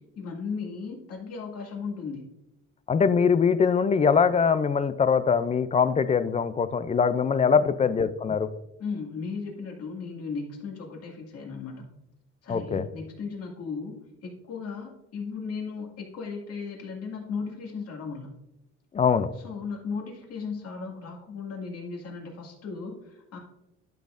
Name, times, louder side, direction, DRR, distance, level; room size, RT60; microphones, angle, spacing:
voice 1, 0.0-2.2 7.5-7.9 8.8-11.9 12.4-18.3 19.4-23.4, left 5 dB, 55° left, 0 dB, 2.1 m, -36 dB
voice 2, 2.9-8.5 12.5-12.8 18.9-19.3, left 6 dB, 25° left, 12 dB, 0.4 m, -22 dB
11.5 x 6.2 x 2.5 m, 0.86 s
cardioid pair, 135°, 29 cm